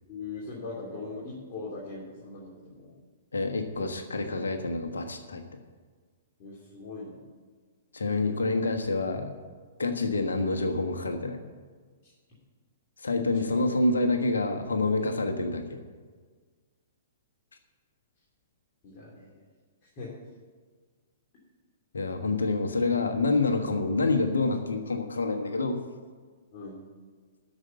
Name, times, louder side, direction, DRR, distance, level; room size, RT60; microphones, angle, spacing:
voice 1, 0.1-3.0 6.4-7.2 12.0-12.1 13.2-13.6 18.8-19.4 19.8-20.1 26.5-26.8, left 3 dB, 35° left, -6 dB, 3.0 m, -41 dB
voice 2, 3.3-5.4 7.9-9.3 9.8-11.4 13.0-15.8 21.9-25.8, left 3 dB, 70° left, 5 dB, 1.4 m, -27 dB
13.0 x 5.5 x 9.0 m, 1.5 s
figure-of-eight pair, 115°, 0 cm